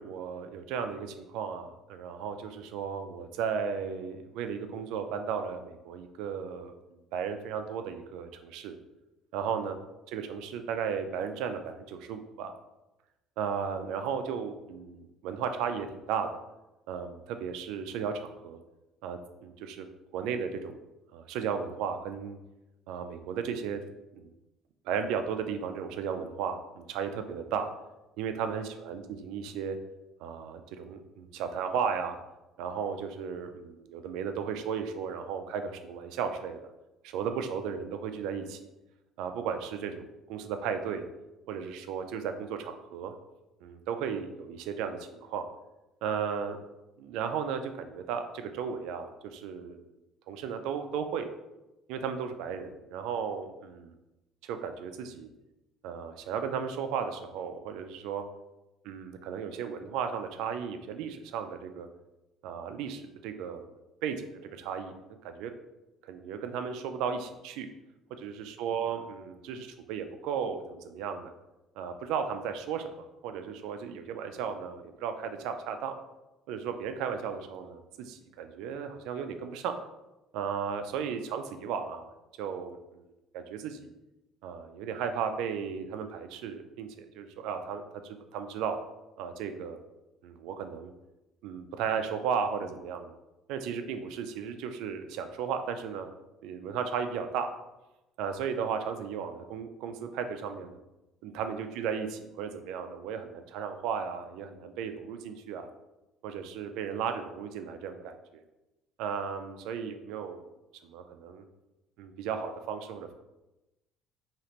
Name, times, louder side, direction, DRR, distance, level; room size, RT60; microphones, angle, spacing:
voice 1, 0.0-6.7 7.1-8.8 9.3-9.7 10.1-12.5 13.4-16.3 16.9-18.6 19.0-19.9 20.1-20.8 21.1-22.4 22.9-23.8 24.1-24.3 24.8-27.7 28.2-29.8 30.2-32.2 32.6-36.7 37.0-38.6 39.2-41.0 41.5-43.1 43.6-45.4 46.0-46.6 47.0-49.8 50.3-51.3 51.9-53.9 54.4-55.3 55.8-58.2 58.8-61.9 62.4-63.6 64.0-65.5 66.0-67.7 68.2-71.3 71.7-75.9 76.5-79.8 80.3-82.1 82.4-83.1 83.3-83.9 84.4-88.8 89.2-89.8 90.2-90.9 91.4-93.1 93.5-96.1 96.4-97.5 98.2-100.8 101.2-105.7 106.2-108.4 109.0-110.4 110.8-111.4 112.0-113.1, right 7 dB, 80° right, 7 dB, 0.4 m, -35 dB
4.9 x 2.9 x 3.0 m, 0.98 s
cardioid pair, 115°, 0 cm